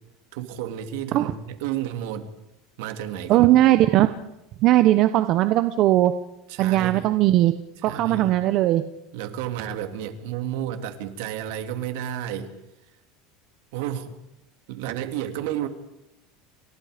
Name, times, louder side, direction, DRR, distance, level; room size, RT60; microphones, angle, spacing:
voice 1, 0.3-2.3 2.8-3.5 6.5-7.1 7.9-8.3 9.1-12.5 13.7-14.1 14.7-15.7, right 10 dB, 70° right, 2.7 m, -31 dB
voice 2, 3.3-4.1 4.6-6.1 6.6-7.5 7.8-8.8, right 15 dB, 45° right, 1.0 m, -18 dB
29.5 x 25.5 x 5.2 m
supercardioid pair, 150°, 0 cm